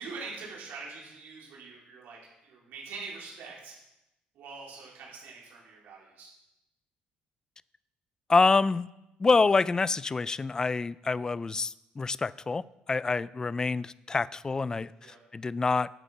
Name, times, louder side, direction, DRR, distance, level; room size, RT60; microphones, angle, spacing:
voice 1, 0.0-3.8 4.3-6.3 15.0-15.2, right 4 dB, 85° right, -4 dB, 3.9 m, -44 dB
voice 2, 8.3-8.9 9.2-14.9 15.3-15.9, left 4 dB, 20° left, 19 dB, 0.3 m, -26 dB
12.0 x 7.1 x 5.6 m, 0.89 s
cardioid pair, 110°, 3 cm